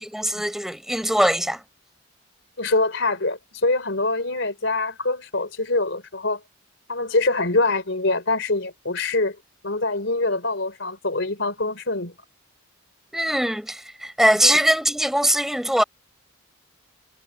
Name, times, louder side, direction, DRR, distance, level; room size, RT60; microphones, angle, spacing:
voice 1, 0.0-1.6 13.1-15.8, equal, ahead, 6.1 m, -21 dB
voice 2, 2.6-6.4 6.9-9.4 9.6-12.1 14.4-14.6, left 2 dB, 60° left, 4.0 m, -24 dB
head